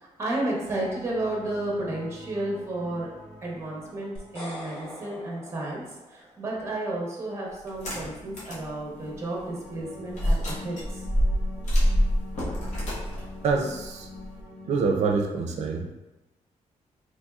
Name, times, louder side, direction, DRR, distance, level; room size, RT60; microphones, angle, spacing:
voice 1, 0.2-3.1 3.4-5.8 6.1-11.0, right 1 dB, 20° right, -3 dB, 0.9 m, -32 dB
sound 1, 0.7-6.0 8.0-15.3, left 2 dB, 5° left, 1.0 m, -46 dB
sound 2, 4.2-6.5, equal, 55° left, 1.4 m, -42 dB
sound 3, 7.7-8.7 9.1-9.2 10.1-14.4, equal, 75° left, 1.0 m, -26 dB
voice 2, 13.4-14.1 14.7-15.9, right 4 dB, 65° right, 3 dB, 0.5 m, -26 dB
4.1 x 3.1 x 2.3 m, 1.1 s
wide cardioid pair, 160°, 12 cm